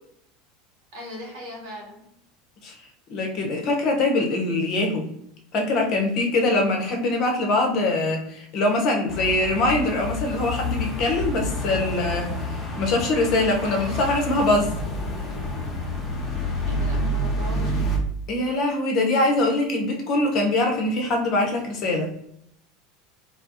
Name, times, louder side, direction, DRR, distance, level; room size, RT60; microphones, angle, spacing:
voice 1, 0.9-2.1 16.7-17.8, left 1 dB, 60° right, -2 dB, 1.0 m, -38 dB
voice 2, 3.1-5.1 5.5-14.7 18.3-22.1, left 2 dB, 50° left, 1 dB, 0.7 m, -23 dB
sound 1, 9.1-18.0, left 1 dB, 20° left, 1.0 m, -28 dB
Zipper (clothing), 11.7-15.8 16.3-16.5, equal, 30° right, 1.3 m, -43 dB
2.4 x 2.2 x 2.6 m, 0.73 s
figure-of-eight pair, 75°, 0 cm